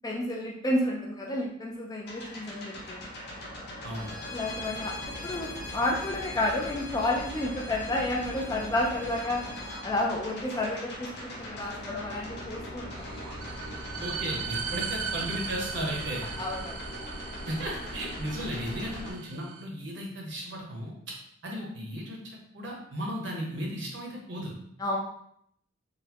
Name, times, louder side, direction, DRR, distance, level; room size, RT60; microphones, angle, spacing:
voice 1, 0.0-3.1 4.3-4.9 5.2-9.4 9.8-13.1 16.4-16.8 24.8-25.0, left 1 dB, 20° left, -2 dB, 0.3 m, -31 dB
sound 1, 2.0-19.1, equal, 50° left, 0.7 m, -40 dB
Bowed string instrument, 3.9-9.8, left 3 dB, 20° right, 0.7 m, -43 dB
sound 2, 12.9-19.7, right 6 dB, 85° right, 0.4 m, -38 dB
voice 2, 14.0-16.3 17.5-21.1 21.4-24.5, equal, 55° right, -2 dB, 0.9 m, -35 dB
3.9 x 2.1 x 2.8 m, 0.71 s
head